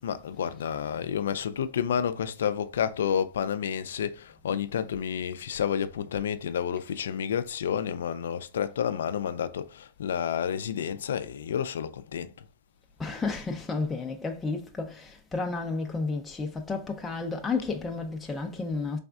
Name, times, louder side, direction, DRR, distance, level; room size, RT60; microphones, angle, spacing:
voice 1, 0.0-12.3, left 8 dB, 90° left, 0.4 m, -30 dB
voice 2, 13.0-19.0, left 4 dB, 10° left, 0.5 m, -32 dB
4.1 x 3.4 x 2.3 m
supercardioid pair, 140°, 0 cm